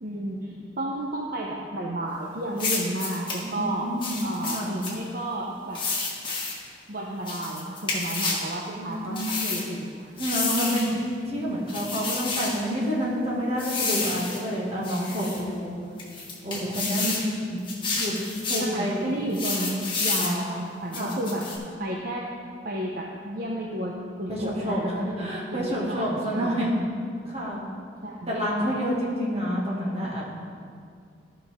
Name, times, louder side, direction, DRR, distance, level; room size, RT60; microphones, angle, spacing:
voice 1, 0.0-3.9 4.2-5.8 6.9-10.1 17.0-17.7 18.6-21.5 21.8-22.3 22.6-26.9 28.0-28.7, right 1 dB, 55° right, -3 dB, 0.8 m, -32 dB
sound 1, 2.6-3.4 4.0-4.9 5.7-6.6 7.3-8.5 9.2-9.7 10.2-10.9 11.7-12.6 13.6-14.4 14.8-15.4 16.0-17.3 17.7-18.7 19.3-20.4 20.9-21.6, left 3 dB, 30° left, 1.6 m, -30 dB
voice 2, 3.4-4.8 8.8-9.3 10.2-15.7 16.4-17.1 18.0-18.2 18.5-19.2 20.2-21.2 24.3-24.9 25.2-26.8 27.2-27.7 28.3-30.4, equal, 35° right, -5 dB, 2.1 m, -28 dB
14.5 x 5.5 x 3.6 m, 2.2 s
head